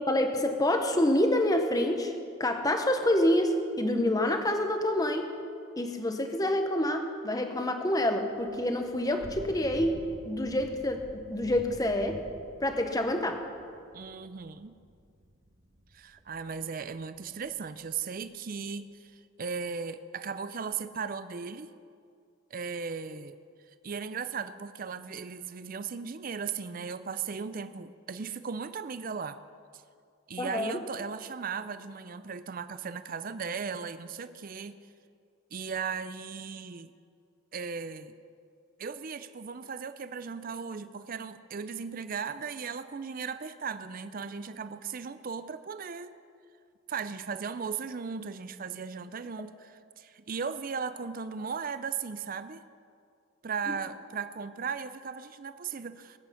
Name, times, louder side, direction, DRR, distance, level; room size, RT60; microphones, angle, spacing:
voice 1, 0.0-2.1 2.4-5.3 5.8-12.2 12.6-13.4 30.4-30.8, left 1 dB, 15° left, 5 dB, 1.0 m, -27 dB
Thunder / Rain, 8.3-17.8, equal, 70° right, 1.9 m, -49 dB
voice 2, 13.9-14.7 15.9-21.7 22.5-23.4 23.8-29.4 30.3-34.8 35.5-36.9 37.5-38.1 38.8-46.1 46.9-52.6 53.4-56.2, right 5 dB, 40° right, 12 dB, 0.5 m, -37 dB
19.5 x 8.8 x 5.7 m, 2.3 s
head